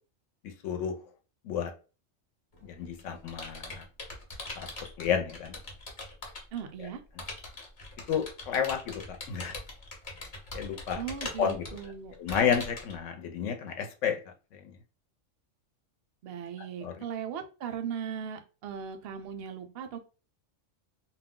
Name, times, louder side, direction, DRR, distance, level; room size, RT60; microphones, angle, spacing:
voice 1, 0.4-1.0 1.4-1.7 2.6-3.8 4.6-4.7 5.0-5.6 8.1-9.5 10.2-10.3 10.5-11.0 11.4-11.6 12.2-14.2 14.5-14.6 16.8-16.9, left 7 dB, 80° left, 0.9 m, -31 dB
Computer keyboard, 2.5-6.6 7.2-12.9, left 2 dB, 45° left, 0.8 m, -42 dB
voice 2, 6.5-7.0 11.0-12.1 16.2-20.0, right 7 dB, 65° right, 0.7 m, -38 dB
2.3 x 2.1 x 3.5 m
omnidirectional pair, 1.3 m